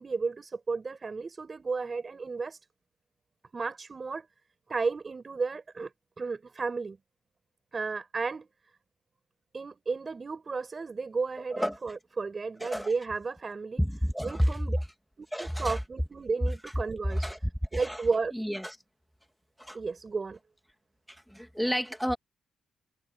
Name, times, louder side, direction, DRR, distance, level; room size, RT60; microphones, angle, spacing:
voice 1, 0.0-2.6 3.5-4.3 4.7-5.9 6.2-7.0 7.7-8.5 9.5-14.8 15.2-17.3 17.7-18.3 19.7-20.4, right 4 dB, 30° right, 6.6 m, -33 dB
voice 2, 12.6-12.9 13.8-14.5 15.3-15.8 17.1-17.4 17.7-18.0 18.3-18.8 19.6-19.8 21.3-22.2, equal, ahead, 2.6 m, -30 dB
cardioid pair, 90°, 0 cm